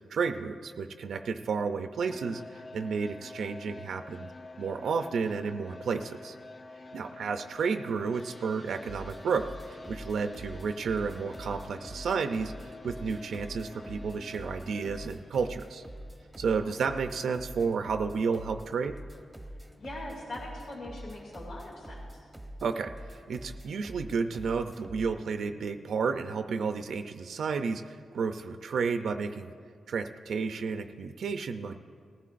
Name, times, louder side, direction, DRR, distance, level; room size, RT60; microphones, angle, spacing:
voice 1, 0.1-4.3 4.6-6.4 6.9-15.8 16.4-18.9 22.6-29.5 29.9-31.8, right 5 dB, 70° right, 7 dB, 0.5 m, -32 dB
sound 1, 2.1-15.1, left 2 dB, 25° left, 0.5 m, -48 dB
voice 2, 6.9-7.3 16.4-16.8 19.8-22.2, left 1 dB, 80° left, -3 dB, 2.5 m, -43 dB
sound 2, 8.1-25.6, left 2 dB, 45° left, 2.0 m, -58 dB
sound 3, 8.8-25.1, right 1 dB, 10° right, 0.9 m, -45 dB
19.5 x 15.0 x 2.5 m, 2.2 s
wide cardioid pair, 140°, 0 cm